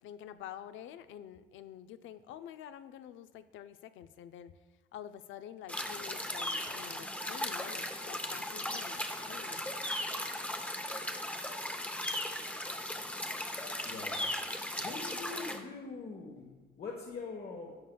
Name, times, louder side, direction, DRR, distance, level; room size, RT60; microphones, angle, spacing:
voice 1, 0.0-4.5 4.9-9.6, left 10 dB, 80° left, 12 dB, 0.5 m, -48 dB
sound 1, 5.7-15.6, left 1 dB, 5° left, 0.7 m, -37 dB
voice 2, 13.8-14.2 14.8-17.8, left 4 dB, 50° left, 0 dB, 1.2 m, -43 dB
11.5 x 7.4 x 2.3 m, 1.2 s
cardioid pair, 90°, 20 cm